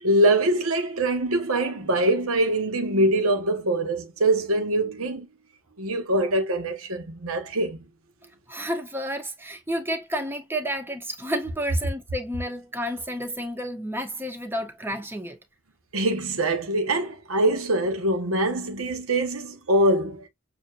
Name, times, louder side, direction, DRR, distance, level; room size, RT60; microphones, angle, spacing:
voice 1, 0.0-5.3 5.8-7.8 15.9-20.2, right 1 dB, 85° right, 1.3 m, -23 dB
voice 2, 8.5-15.4, equal, 10° right, 0.9 m, -31 dB
6.8 x 2.7 x 2.5 m
head